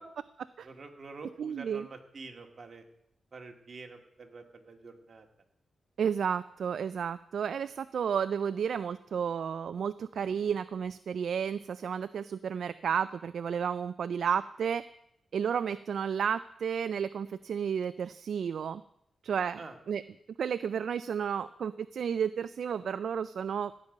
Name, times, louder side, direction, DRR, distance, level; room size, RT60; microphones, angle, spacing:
voice 1, 0.6-2.8 3.3-5.3 19.6-19.8, right 3 dB, 45° right, 3 dB, 2.0 m, -47 dB
voice 2, 1.4-1.9 6.0-14.8 15.3-18.8 19.2-19.6 19.9-20.0 20.4-23.7, right 7 dB, 75° right, 13 dB, 0.4 m, -32 dB
16.0 x 5.4 x 9.1 m, 0.76 s
cardioid pair, 95°, 0 cm